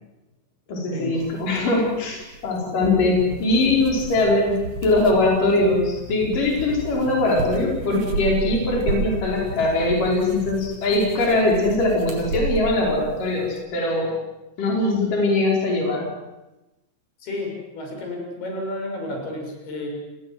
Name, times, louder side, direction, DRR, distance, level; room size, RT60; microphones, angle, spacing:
voice 1, 0.7-4.6 4.8-14.2 14.6-16.1, left 2 dB, 60° left, -1 dB, 6.6 m, -21 dB
sound 1, 1.2-13.6, right 4 dB, 60° right, 4.4 m, -34 dB
sound 2, 2.8-10.5, right 2 dB, 45° right, 8.4 m, -36 dB
voice 2, 17.2-19.9, left 1 dB, 90° left, 1 dB, 8.8 m, -31 dB
29.5 x 22.0 x 7.8 m, 1.0 s
omnidirectional pair, 4.4 m